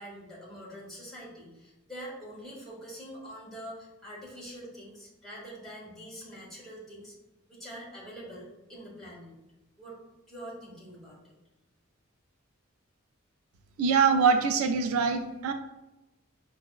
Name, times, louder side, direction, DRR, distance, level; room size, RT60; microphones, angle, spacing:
voice 1, 0.0-7.1 7.5-9.3 9.8-10.0 10.3-11.2, equal, ahead, -6 dB, 1.1 m, -44 dB
voice 2, 13.8-15.5, right 5 dB, 85° right, 7 dB, 0.3 m, -24 dB
5.8 x 2.0 x 2.2 m, 0.96 s
head